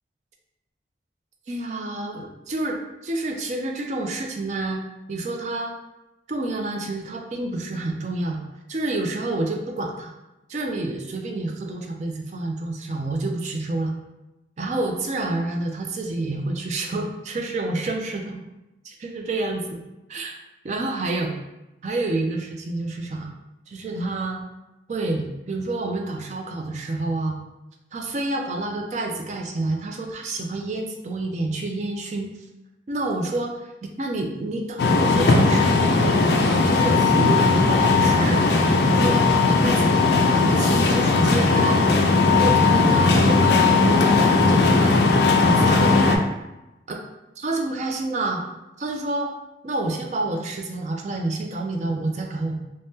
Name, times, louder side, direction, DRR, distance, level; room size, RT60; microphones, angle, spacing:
voice 1, 1.5-5.7 6.3-8.4 8.7-10.1 10.5-13.9 14.6-18.2 18.9-19.8 20.1-20.3 20.6-21.3 21.8-23.3 23.7-24.4 24.9-27.4 27.9-32.3 32.9-36.4 36.6-38.4 38.9-39.9 40.3-42.0 42.3-45.0 45.4-46.3 46.9-47.0 47.4-48.4 48.8-49.3 49.6-52.5, right 2 dB, 40° right, 2 dB, 0.3 m, -28 dB
sound 1, 34.8-46.2, left 3 dB, 65° left, 0.3 m, -18 dB
3.4 x 2.0 x 2.7 m, 0.97 s
head